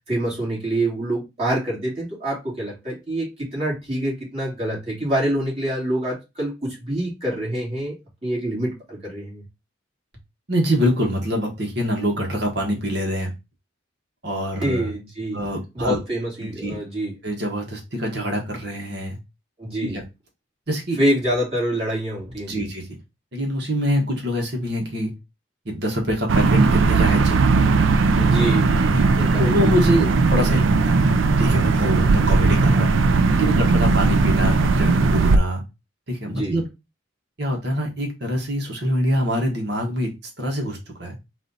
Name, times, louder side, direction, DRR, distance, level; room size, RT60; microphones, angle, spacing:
voice 1, 0.1-8.0 8.2-9.4 14.6-15.4 15.7-17.1 19.6-20.0 21.0-22.6 28.2-30.1 36.2-36.5, right 1 dB, 30° right, 2.6 m, -26 dB
voice 2, 10.5-13.3 14.2-14.9 15.3-16.0 16.4-16.8 17.2-19.2 19.8-20.0 20.7-21.0 22.4-22.8 23.3-25.1 25.6-27.4 28.9-29.0 29.4-31.0 31.4-32.9 33.3-35.6 36.1-36.7 37.4-40.1 40.4-41.1, equal, 60° right, 1.4 m, -25 dB
sound 1, 26.3-35.4, right 3 dB, 85° right, 0.4 m, -18 dB
4.2 x 2.6 x 4.0 m
head